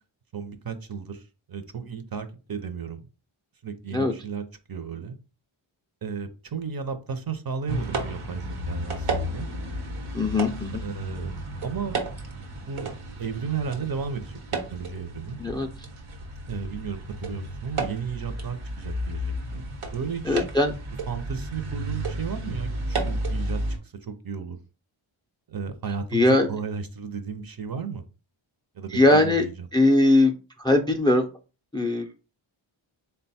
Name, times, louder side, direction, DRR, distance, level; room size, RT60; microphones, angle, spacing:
voice 1, 0.3-3.1 3.6-5.2 6.0-9.5 10.8-11.4 11.6-12.0 12.5-12.9 13.2-14.4 14.7-15.4 16.5-20.4 21.1-23.6 24.0-24.6 25.5-28.0 28.7-29.7, right 6 dB, 45° right, 9 dB, 0.6 m, -34 dB
sound 1, 7.7-23.8, right 1 dB, 85° right, 1.0 m, -32 dB
voice 2, 10.1-10.8 15.4-15.7 20.3-20.7 26.1-26.5 28.9-29.5 29.7-30.3 30.6-31.2 31.7-32.1, left 2 dB, 10° left, 6 dB, 0.4 m, -20 dB
3.8 x 2.2 x 4.1 m, 0.33 s
wide cardioid pair, 95°, 49 cm